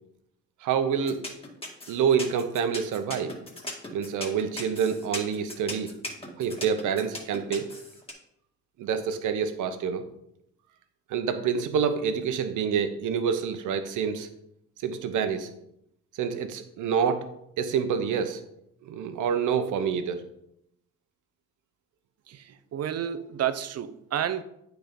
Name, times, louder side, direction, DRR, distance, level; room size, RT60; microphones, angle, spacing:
voice 1, 0.6-1.2 1.9-3.3 3.9-5.9 6.4-7.7 8.8-10.0 11.1-14.3 14.8-15.5 16.2-17.3 17.6-18.4 18.9-20.2, right 7 dB, 80° right, 8 dB, 1.0 m, -27 dB
sound 1, 1.1-8.1, left 2 dB, 20° left, 2.1 m, -37 dB
voice 2, 22.3-24.4, right 9 dB, 55° right, 12 dB, 0.7 m, -30 dB
9.0 x 4.6 x 5.2 m, 0.76 s
cardioid pair, 90°, 30 cm